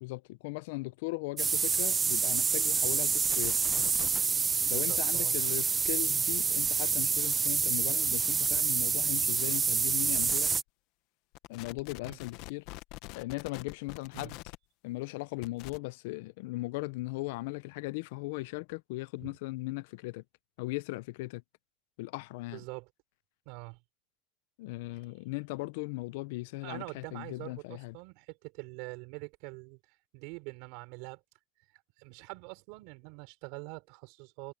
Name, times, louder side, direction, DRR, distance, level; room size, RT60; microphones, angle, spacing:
voice 1, 0.0-3.6 4.7-10.5 11.5-12.6 13.1-14.4 14.8-20.2 20.6-21.4 22.0-22.6 24.6-28.0, left 22 dB, 85° left, 0.5 m, -38 dB
sound 1, 1.4-10.6, right 5 dB, 25° right, 0.4 m, -28 dB
sound 2, 3.2-4.2 5.6-5.9 6.6-6.7 8.1-8.2 8.4-8.6 10.1-10.6 11.3-14.6 15.4-15.8, left 20 dB, 70° left, 1.1 m, -45 dB
voice 2, 4.6-5.4 12.0-12.2 14.1-14.3 19.2-19.4 22.5-22.9 23.5-23.8 26.6-29.8 30.1-31.2 32.0-34.5, right 28 dB, 75° right, 4.4 m, -44 dB
supercardioid pair, 120°, 0 cm